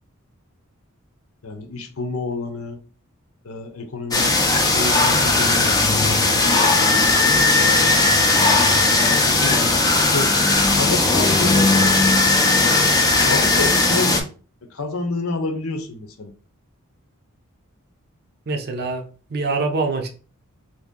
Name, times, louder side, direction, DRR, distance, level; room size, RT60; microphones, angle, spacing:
voice 1, 1.4-2.8 3.4-7.1 7.5-8.2 9.0-9.7 10.0-10.3 10.7-12.2 13.2-14.2 14.7-16.3, left 3 dB, 70° left, 5 dB, 0.7 m, -29 dB
sound 1, 4.1-14.2, left 3 dB, 20° left, 0.5 m, -17 dB
voice 2, 18.5-19.0 19.3-20.1, right 3 dB, 50° right, 3 dB, 0.6 m, -24 dB
2.9 x 2.7 x 3.7 m, 0.38 s
head